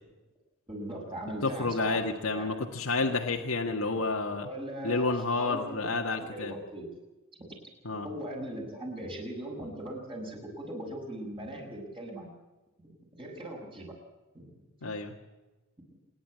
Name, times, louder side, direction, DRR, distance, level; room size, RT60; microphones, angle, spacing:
voice 1, 0.7-2.6 3.6-3.7 4.3-5.7 5.9-6.9 7.4-7.6 8.0-12.3 12.8-13.9 14.3-14.5 14.8-14.9, right 1 dB, 25° right, 0 dB, 6.4 m, -40 dB
voice 2, 1.4-4.5 4.8-6.5 7.8-8.1 14.8-15.1, left 3 dB, 80° left, 2 dB, 1.7 m, -30 dB
27.5 x 11.0 x 9.6 m, 1.1 s
head